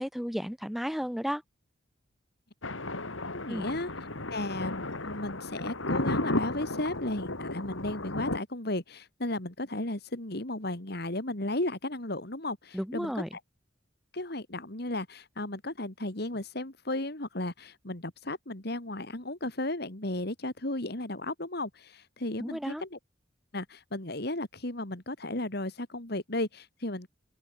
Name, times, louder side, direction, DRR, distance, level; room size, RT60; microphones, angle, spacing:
voice 1, 0.0-1.4 3.5-3.7 12.7-13.3 22.4-22.8, equal, ahead, 6.6 m, -33 dB
Thunder, 2.6-8.4, left 2 dB, 90° left, 4.7 m, -34 dB
voice 2, 3.3-3.9 4.3-13.4 14.1-23.0 23.5-27.1, left 1 dB, 55° left, 2.9 m, -34 dB
open air
head